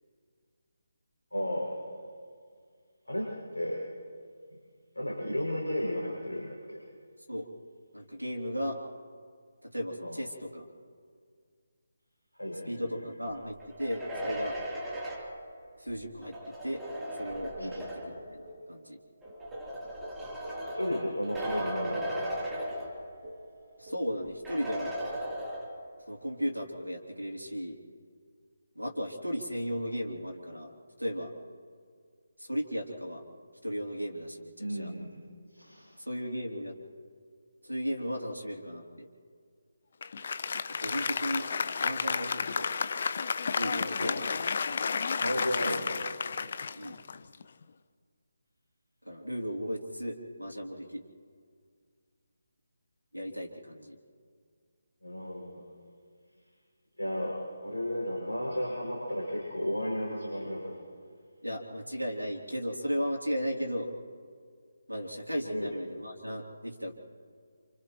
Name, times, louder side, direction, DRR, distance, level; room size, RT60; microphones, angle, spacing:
voice 1, 1.3-1.7 3.0-3.8 4.9-6.8 10.0-10.2 12.3-12.9 17.6-17.7 20.6-22.4 34.6-35.1 35.5-36.0 44.0-44.4 45.2-46.0 55.0-55.6 57.0-57.4 57.6-60.7 65.5-65.7, equal, 75° left, -4 dB, 6.6 m, -34 dB
voice 2, 7.9-8.8 9.6-10.6 12.6-14.6 15.8-16.8 17.2-19.0 23.8-24.9 26.1-27.8 28.7-31.3 32.4-33.2 33.6-34.9 36.0-36.7 37.6-39.1 40.7-41.5 41.8-42.7 43.5-44.3 46.7-47.0 49.0-51.0 53.1-54.0 61.4-63.9 64.9-66.9, equal, 85° right, -1 dB, 3.4 m, -35 dB
sound 1, 13.6-18.3 19.2-23.4 23.7-23.8 24.4-26.0, equal, 5° right, 3.5 m, -37 dB
sound 2, 17.3-18.7 19.3-22.1 22.6-22.8 23.2-23.5 23.9-24.2 24.5-24.8 25.1-25.4, right 1 dB, 30° right, 3.0 m, -49 dB
Applause, 40.0-47.6, left 5 dB, 45° left, 0.7 m, -32 dB
29.5 x 29.0 x 3.1 m, 2.1 s
figure-of-eight pair, 150°, 0 cm